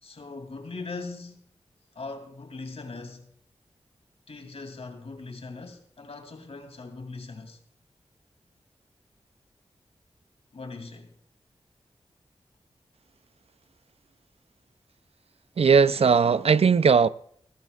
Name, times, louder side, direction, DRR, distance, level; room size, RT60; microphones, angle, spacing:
voice 1, 0.0-1.5 1.9-3.3 4.3-7.6 10.5-11.1, left 3 dB, 70° left, 2.8 m, -40 dB
voice 2, 15.6-17.1, right 5 dB, 65° right, 0.5 m, -18 dB
20.5 x 12.0 x 2.4 m
cardioid pair, 45°, 11 cm